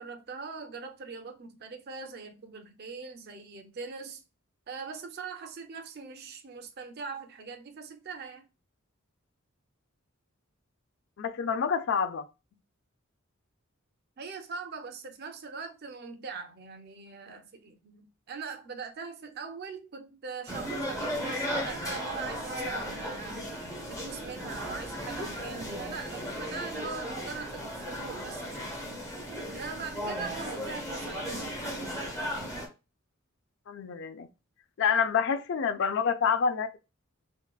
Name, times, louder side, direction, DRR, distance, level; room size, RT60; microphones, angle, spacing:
voice 1, 0.0-4.2 4.7-8.5 14.2-23.5 23.9-28.7 29.5-32.4, right 5 dB, 50° right, 0.5 m, -41 dB
voice 2, 11.2-12.3 33.7-34.3 34.8-36.8, left 6 dB, 60° left, 0.3 m, -27 dB
sound 1, 20.5-32.7, equal, 15° left, 0.7 m, -36 dB
3.6 x 2.2 x 2.3 m
head